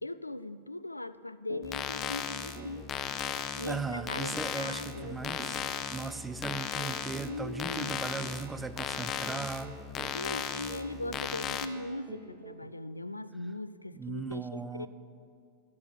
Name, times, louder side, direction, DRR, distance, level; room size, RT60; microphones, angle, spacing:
voice 1, 0.0-2.9 3.6-5.3 7.3-8.0 10.1-14.9, left 2 dB, 85° left, 14 dB, 0.3 m, -39 dB
sound 1, 1.5-1.7 2.0-2.2 2.5-12.8, right 5 dB, 30° right, 0.9 m, -49 dB
sound 2, 1.6-11.7, left 8 dB, 30° left, 0.7 m, -36 dB
voice 2, 3.6-5.6 5.9-9.7 13.9-14.9, right 4 dB, 10° right, 11 dB, 0.6 m, -38 dB
11.5 x 7.0 x 8.4 m, 2.4 s
figure-of-eight pair, 90°, 0 cm